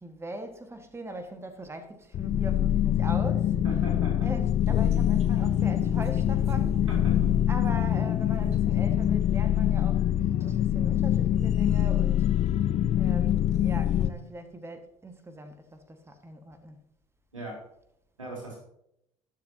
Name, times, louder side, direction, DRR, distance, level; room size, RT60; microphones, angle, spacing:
voice 1, 0.0-3.5 4.2-6.9 7.5-10.0 10.4-12.3 12.9-16.8, right 1 dB, 15° right, 1.6 m, -40 dB
sound 1, 2.1-14.1, left 11 dB, 45° left, 0.7 m, -24 dB
voice 2, 3.6-4.3 6.9-7.3 17.3-17.5 18.2-18.6, right 1 dB, 90° right, 3.0 m, -38 dB
sound 2, 4.8-9.2, right 5 dB, 40° right, 0.9 m, -44 dB
20.0 x 7.2 x 2.8 m
figure-of-eight pair, 55°, 16 cm